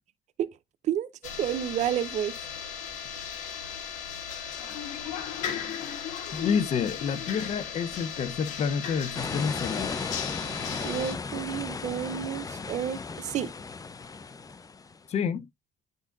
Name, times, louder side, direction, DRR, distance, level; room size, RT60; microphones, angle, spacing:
sound 1, 1.2-11.2, left 8 dB, 90° left, 1.3 m, -36 dB
voice 1, 1.4-2.3 10.8-13.5, right 10 dB, 70° right, 0.6 m, -30 dB
voice 2, 6.3-9.9 15.1-15.5, left 6 dB, 65° left, 0.8 m, -29 dB
sound 2, 9.1-15.1, left 4 dB, 30° left, 0.7 m, -36 dB
9.6 x 3.8 x 2.6 m
cardioid pair, 75°, 12 cm